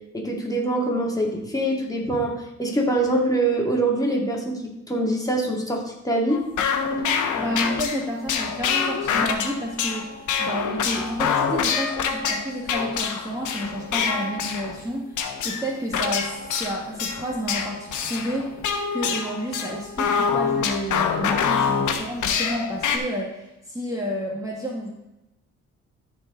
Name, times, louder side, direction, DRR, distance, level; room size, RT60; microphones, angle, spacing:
voice 1, 0.1-6.4, right 1 dB, 10° left, -1 dB, 2.3 m, -24 dB
sound 1, 6.3-14.8 15.2-23.0, left 6 dB, 75° left, 1.2 m, -26 dB
voice 2, 7.3-18.5 18.9-24.9, equal, 10° right, -3 dB, 1.7 m, -30 dB
13.5 x 4.6 x 3.8 m, 0.92 s
cardioid pair, 90°, 30 cm